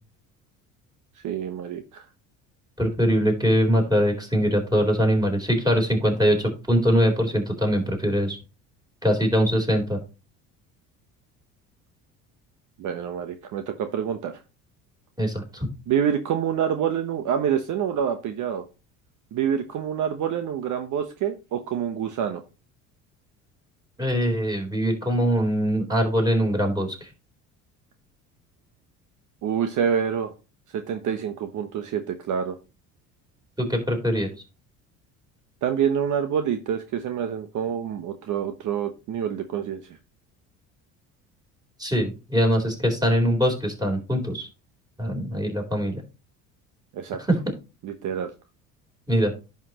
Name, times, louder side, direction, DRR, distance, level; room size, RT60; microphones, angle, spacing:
voice 1, 1.2-2.0 12.8-14.4 15.9-18.6 19.3-22.4 29.4-30.3 30.7-32.6 35.6-40.0 46.9-47.2 47.8-48.3, right 8 dB, 55° right, 8 dB, 1.0 m, -27 dB
voice 2, 2.8-8.4 9.0-10.0 15.2-15.7 24.0-27.1 33.6-34.3 41.8-44.5 45.0-46.0 49.1-49.3, equal, 10° right, 2 dB, 3.8 m, -22 dB
10.5 x 5.8 x 3.0 m, 0.30 s
hypercardioid pair, 75°, 37 cm